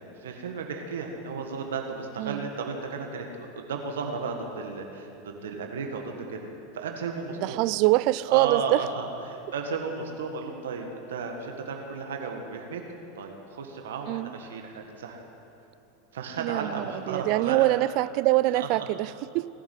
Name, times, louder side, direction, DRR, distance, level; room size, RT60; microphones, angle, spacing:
voice 1, 0.0-6.5 6.7-7.6 8.3-12.8 13.2-15.2 16.1-17.7 18.5-18.7, right 5 dB, 80° right, 1.6 m, -34 dB
voice 2, 2.2-2.5 7.4-8.8 14.1-14.4 16.4-19.5, right 18 dB, 55° right, 0.4 m, -24 dB
18.5 x 7.2 x 9.3 m
hypercardioid pair, 95°, 0 cm